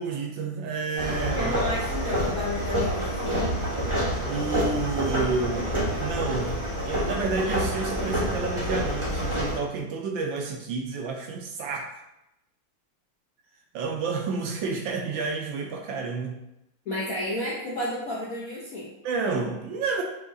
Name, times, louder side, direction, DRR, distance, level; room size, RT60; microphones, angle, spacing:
voice 1, 0.0-1.5 4.2-11.9 13.7-16.4 19.0-20.0, right 4 dB, 75° right, 1 dB, 1.2 m, -30 dB
sound 1, 1.0-9.6, equal, 35° right, 0.5 m, -27 dB
voice 2, 1.3-3.4 16.9-18.9, left 1 dB, 70° left, -6 dB, 0.8 m, -32 dB
6.4 x 2.8 x 2.6 m, 0.88 s
omnidirectional pair, 2.3 m